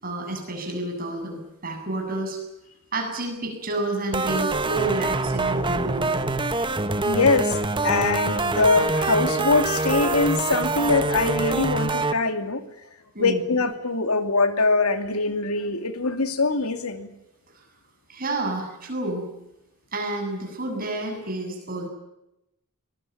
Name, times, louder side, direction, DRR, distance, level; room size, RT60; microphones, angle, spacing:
voice 1, 0.0-2.4 2.9-6.2 13.1-13.4 18.1-19.3 19.9-21.9, right 2 dB, 40° right, 3 dB, 7.8 m, -29 dB
sound 1, 4.1-12.1, right 3 dB, 20° right, 1.3 m, -25 dB
voice 2, 7.0-7.6 7.8-12.6 13.2-17.1, left 3 dB, 90° left, 8 dB, 2.6 m, -23 dB
23.0 x 21.0 x 9.3 m, 0.87 s
head